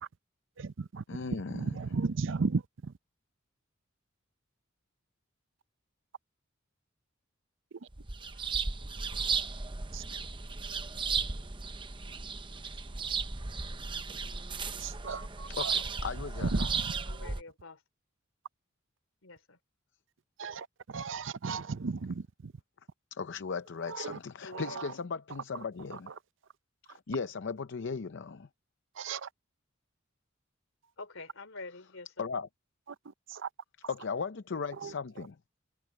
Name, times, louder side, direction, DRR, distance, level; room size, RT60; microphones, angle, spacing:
voice 1, 0.6-1.0 1.5-2.9 9.9-10.0 14.8-15.7 16.4-16.9 20.4-22.5 23.9-24.2 24.5-24.9 29.0-29.3 33.3-33.5 34.8-34.9, right 4 dB, 65° right, 0.6 m, -35 dB
voice 2, 1.1-1.8 15.5-16.7 23.1-26.1 26.9-28.5 32.2-32.5 33.9-35.4, left 5 dB, 60° left, 0.6 m, -37 dB
sound 1, 7.9-17.4, right 4 dB, 25° right, 0.8 m, -35 dB
voice 3, 17.0-17.8 19.2-19.6 24.4-25.0 31.0-32.3, left 3 dB, 80° left, 3.2 m, -47 dB
head